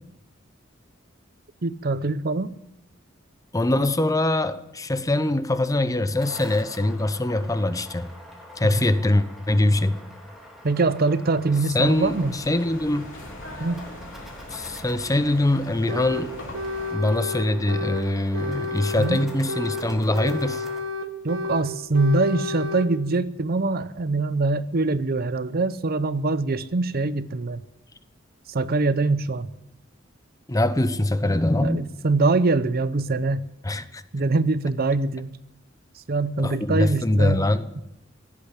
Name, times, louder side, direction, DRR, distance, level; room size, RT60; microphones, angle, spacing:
voice 1, 1.6-2.6 8.6-8.9 10.6-12.4 13.6-13.8 19.0-19.2 21.2-27.6 28.5-29.5 31.6-33.4 34.1-35.3 36.1-37.4 37.8-37.9, right 3 dB, 50° right, 0.7 m, -23 dB
voice 2, 3.5-8.1 8.6-10.0 11.7-13.1 14.5-16.3 16.9-20.6 30.5-31.9 33.6-34.0 36.4-37.7, left 1 dB, 15° left, 0.8 m, -23 dB
sound 1, 5.9-20.8, left 1 dB, ahead, 3.5 m, -45 dB
sound 2, 11.8-17.0, left 1 dB, 75° left, 4.0 m, -41 dB
sound 3, 15.9-16.3 16.5-18.1 18.3-19.9 20.1-21.7 21.9-22.9, left 3 dB, 75° right, 1.5 m, -31 dB
16.5 x 8.6 x 9.9 m
head